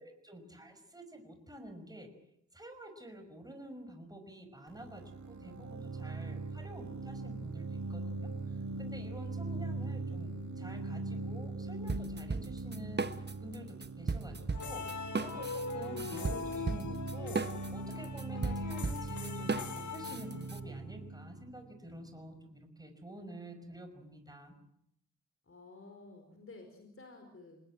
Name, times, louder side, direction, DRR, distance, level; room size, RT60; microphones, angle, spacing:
voice 1, 0.0-2.1 2.5-14.8 15.1-24.5, right 1 dB, 15° right, 6 dB, 5.6 m, -49 dB
sound 1, 4.7-22.3, right 3 dB, 70° right, 2.8 m, -41 dB
sound 2, 11.9-13.6 13.8-20.6, right 4 dB, 35° right, 1.3 m, -36 dB
sound 3, 14.5-20.8, left 5 dB, 85° left, 2.0 m, -42 dB
voice 2, 25.5-27.6, left 3 dB, 50° left, 5 dB, 4.8 m, -52 dB
25.5 x 20.0 x 7.7 m, 0.74 s
wide cardioid pair, 80°, 29 cm